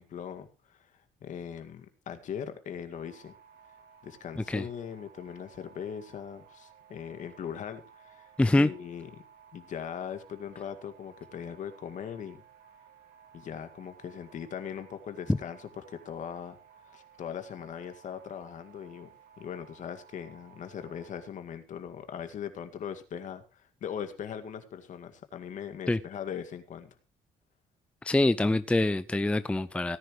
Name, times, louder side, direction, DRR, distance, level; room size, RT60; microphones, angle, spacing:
voice 1, 0.0-3.3 4.0-9.1 9.5-12.4 13.3-16.6 16.8-27.0, left 8 dB, 60° left, 9 dB, 2.1 m, -40 dB
sound 1, 2.9-21.3, right 7 dB, 85° right, 3.0 m, -57 dB
voice 2, 8.4-8.7 25.9-26.0 28.0-30.0, left 2 dB, 10° left, 13 dB, 0.6 m, -25 dB
18.0 x 10.5 x 3.2 m, 0.31 s
cardioid pair, 100°, 14 cm